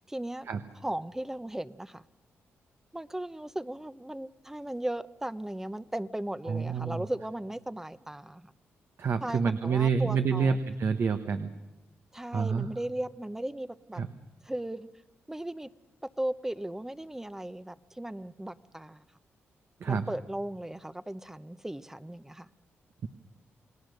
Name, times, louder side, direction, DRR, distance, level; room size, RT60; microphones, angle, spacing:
voice 1, 0.1-0.5 0.8-2.0 2.9-8.5 9.2-10.6 12.1-14.0 14.4-14.9 15.3-15.7 16.2-19.0 19.9-22.5, right 1 dB, 10° right, 14 dB, 0.8 m, -36 dB
voice 2, 6.5-7.0 9.0-11.5 12.3-12.7 14.0-14.1 19.8-20.1, right 5 dB, 60° right, 8 dB, 1.2 m, -28 dB
29.0 x 19.0 x 6.6 m, 1.1 s
cardioid pair, 80°, 5 cm